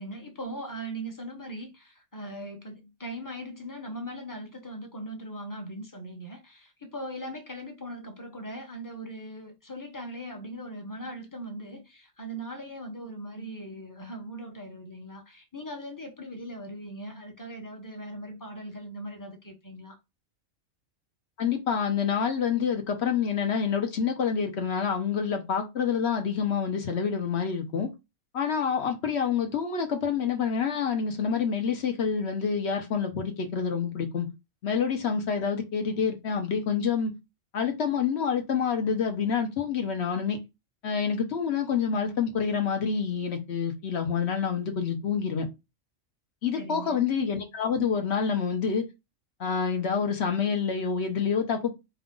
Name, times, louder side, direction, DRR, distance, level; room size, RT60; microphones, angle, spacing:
voice 1, 0.0-20.0 46.5-47.0, right 1 dB, 15° left, 0.9 m, -40 dB
voice 2, 21.4-27.9 28.3-34.3 34.6-37.1 37.5-40.4 40.8-45.5 46.4-48.9 49.4-51.7, left 6 dB, 60° left, 1.0 m, -27 dB
4.5 x 2.4 x 3.7 m
omnidirectional pair, 1.3 m